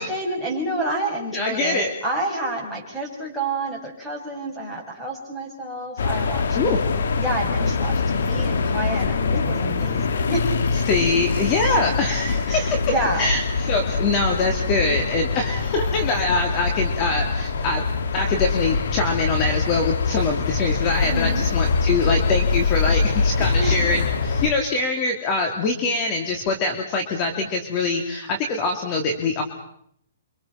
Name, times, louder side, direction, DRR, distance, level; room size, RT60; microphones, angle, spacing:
voice 1, 0.0-6.6 7.2-10.5 12.5-13.3 21.0-21.4 23.6-23.9, right 1 dB, ahead, -2 dB, 7.1 m, -29 dB
voice 2, 1.3-1.9 6.5-6.8 10.8-12.5 13.2-17.8 18.1-29.4, left 3 dB, 30° left, 4 dB, 2.9 m, -24 dB
sound 1, 6.0-24.5, left 4 dB, 75° left, 2.5 m, -23 dB
29.5 x 25.5 x 5.9 m, 0.71 s
hypercardioid pair, 155°, 0 cm